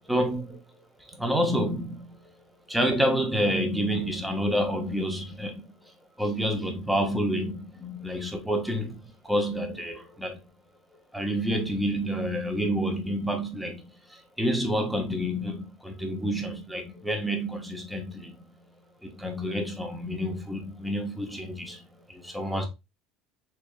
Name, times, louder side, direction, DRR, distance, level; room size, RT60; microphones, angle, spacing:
voice 1, 0.1-0.6 1.1-2.3 2.7-5.6 6.2-10.4 11.1-13.8 14.1-18.4 19.0-22.7, equal, 5° right, 0.8 m, -29 dB
3.6 x 3.4 x 2.5 m
cardioid pair, 155°, 0 cm